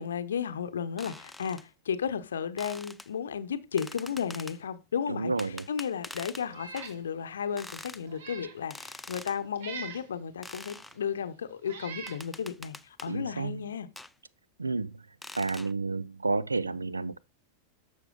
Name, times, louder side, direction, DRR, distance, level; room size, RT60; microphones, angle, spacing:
voice 1, 0.0-13.9, left 7 dB, 65° left, 0.7 m, -34 dB
sound 1, 1.0-1.6 2.6-3.1 3.8-4.6 5.4-6.5 6.8-6.9 7.6-8.0 8.7-9.4 10.4-11.0 12.1-13.1 14.0-14.1 15.2-15.7, left 2 dB, 5° left, 0.4 m, -45 dB
voice 2, 5.1-5.7 13.1-13.7 14.6-15.0 15.4-17.2, right 3 dB, 80° right, 0.4 m, -31 dB
Meow, 6.5-7.0 7.4-7.5 8.0-8.6 9.6-10.1 10.9-11.0 11.6-12.2, right 6 dB, 60° right, 1.3 m, -42 dB
11.5 x 6.4 x 2.4 m
figure-of-eight pair, 90°, 0 cm